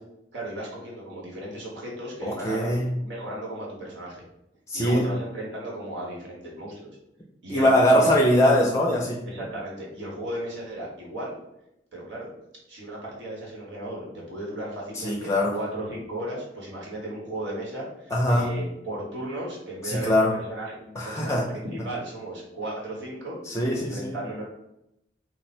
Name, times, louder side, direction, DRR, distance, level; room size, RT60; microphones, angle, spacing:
voice 1, 0.3-4.2 4.7-6.9 7.4-8.2 9.3-11.3 11.9-12.3 12.7-24.4, right 1 dB, 85° right, -4 dB, 1.3 m, -35 dB
voice 2, 2.2-2.9 4.7-5.1 7.5-9.2 15.0-15.5 18.1-18.5 19.8-20.4 21.0-21.5 23.5-24.1, left 1 dB, 15° left, -1 dB, 0.4 m, -22 dB
4.6 x 2.1 x 4.2 m, 0.84 s
head